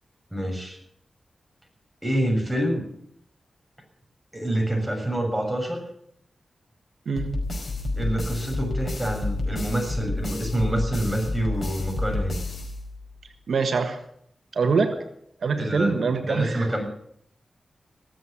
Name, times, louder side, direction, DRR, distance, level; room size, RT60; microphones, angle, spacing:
voice 1, 0.3-0.8 2.0-2.9 4.3-5.8 8.0-12.4 15.6-15.9 16.2-16.8, right 1 dB, 10° right, 2 dB, 6.6 m, -27 dB
sound 1, 7.2-13.3, left 2 dB, 60° left, 5.1 m, -30 dB
voice 2, 13.5-14.0 14.5-15.0 15.4-16.7, right 4 dB, 80° right, 7 dB, 1.4 m, -24 dB
19.5 x 7.9 x 8.6 m, 0.68 s
cardioid pair, 55°, 0 cm